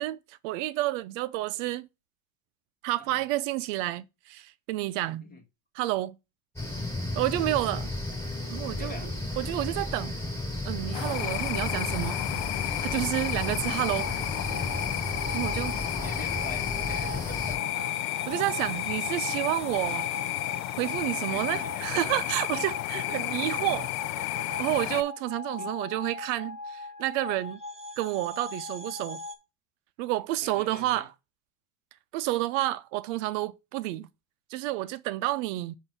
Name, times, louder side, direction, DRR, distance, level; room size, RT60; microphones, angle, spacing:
voice 1, 0.0-1.9 2.8-5.2 5.7-6.2 7.1-7.9 8.5-9.1 9.4-10.2 10.7-12.2 12.8-14.1 15.3-15.7 18.3-20.1 20.8-23.9 24.6-27.6 28.0-29.2 30.0-31.1 32.1-34.1 34.5-35.8, right 16 dB, 65° right, 0.6 m, -30 dB
sound 1, 6.6-17.6, left 1 dB, 5° left, 4.1 m, -34 dB
voice 2, 8.8-9.1 15.4-17.6 18.0-18.3 21.3-22.1 22.9-23.7 24.1-24.4 25.6-25.7 30.4-31.1, left 3 dB, 20° left, 1.7 m, -46 dB
sound 2, 10.9-25.0, left 17 dB, 60° left, 0.6 m, -32 dB
sound 3, 13.6-29.4, left 2 dB, 15° right, 1.1 m, -40 dB
7.7 x 2.7 x 5.9 m
supercardioid pair, 120°, 40 cm